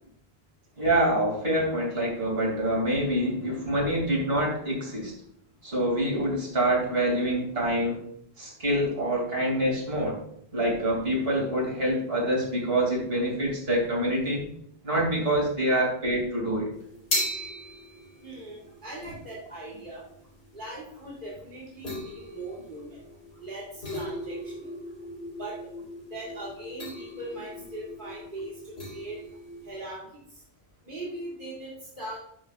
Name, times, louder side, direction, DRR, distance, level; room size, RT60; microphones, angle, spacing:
voice 1, 0.8-5.1 5.6-8.0 8.4-10.2 10.5-14.4 14.8-16.7, right 1 dB, 70° right, -2 dB, 3.1 m, -26 dB
sound 1, 16.7-29.7, equal, 90° left, 3.5 m, -38 dB
voice 2, 18.2-20.0 20.5-23.0 23.4-24.7 25.4-25.6 26.1-29.2 29.6-30.4 30.8-32.2, right 2 dB, 55° right, -6 dB, 2.8 m, -40 dB
11.0 x 6.2 x 2.5 m, 0.70 s
omnidirectional pair, 1.0 m